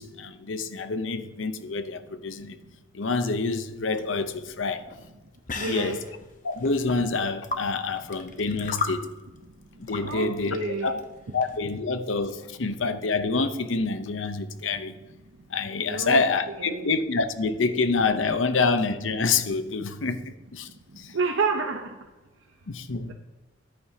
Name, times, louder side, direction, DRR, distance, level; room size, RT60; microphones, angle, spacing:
voice 1, 0.0-2.6 2.9-4.9 5.7-6.0 6.4-9.1 9.9-11.0 11.3-14.9 15.5-20.2 20.5-20.7 21.0-21.1 22.7-23.1, left 4 dB, 75° left, 0.8 m, -27 dB
sound 1, 3.7-11.6, left 4 dB, 45° left, 1.0 m, -37 dB
voice 2, 5.6-6.0 10.0-11.0 15.9-16.2 16.6-16.8 21.1-21.9, right 4 dB, 85° right, 0.8 m, -29 dB
14.0 x 9.9 x 2.8 m
head